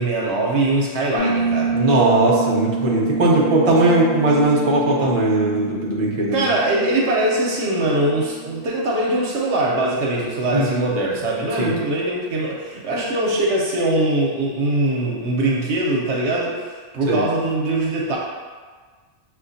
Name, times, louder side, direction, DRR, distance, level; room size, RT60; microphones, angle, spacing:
voice 1, 0.0-1.8 6.3-18.2, right 2 dB, 65° right, -3 dB, 0.9 m, -22 dB
Piano, 1.2-9.7, right 5 dB, 40° left, 1.1 m, -28 dB
voice 2, 1.7-6.5 10.5-10.8 11.6-11.7 17.1-17.2, right 1 dB, 40° right, -4 dB, 0.5 m, -18 dB
5.8 x 2.4 x 2.6 m, 1.5 s
omnidirectional pair, 1.4 m